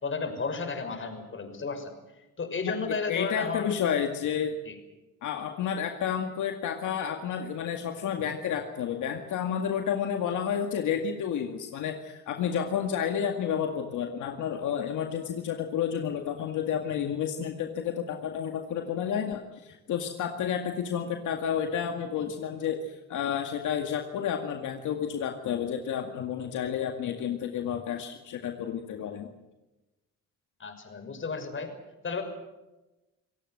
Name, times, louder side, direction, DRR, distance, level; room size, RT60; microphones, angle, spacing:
voice 1, 0.0-1.9 2.4-3.7 4.6-4.7 30.6-31.7 32.0-32.2, left 4 dB, 40° left, 6 dB, 6.0 m, -33 dB
voice 2, 3.1-4.5 5.2-29.3, left 8 dB, 80° left, 4 dB, 2.1 m, -31 dB
27.5 x 17.0 x 7.9 m, 1.0 s
cardioid pair, 90°, 30 cm